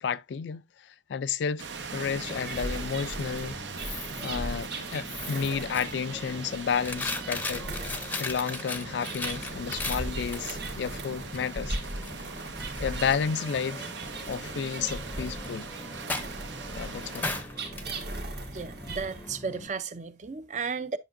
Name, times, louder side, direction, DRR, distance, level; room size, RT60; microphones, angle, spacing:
voice 1, 0.0-0.6 1.1-1.6 1.9-3.6 3.9-4.0 4.2-7.7 8.2-11.8 12.8-13.9 14.3-15.7 16.8-17.4, left 6 dB, 80° left, 0.3 m, -31 dB
sound 1, 1.6-17.4, right 5 dB, 80° right, 0.9 m, -41 dB
Coin (dropping), 1.9-19.7, left 2 dB, 10° left, 0.6 m, -39 dB
sound 2, 2.3-19.3, right 2 dB, 60° right, 1.5 m, -39 dB
voice 2, 18.5-21.0, right 5 dB, 40° right, 0.5 m, -34 dB
10.0 x 5.8 x 2.5 m
head